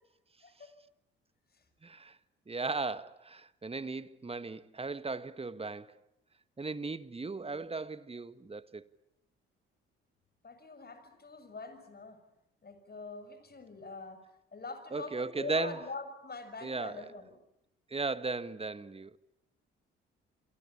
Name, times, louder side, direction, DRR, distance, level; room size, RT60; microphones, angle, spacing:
voice 1, 0.4-0.7 10.4-12.2 12.6-14.3 14.5-17.4, left 3 dB, 35° left, 6.4 m, -44 dB
voice 2, 1.8-2.2 2.5-5.9 6.6-8.8 14.9-15.8 16.6-17.1 17.9-19.2, right 3 dB, 20° right, 1.6 m, -36 dB
28.0 x 24.5 x 8.7 m
figure-of-eight pair, 45°, 29 cm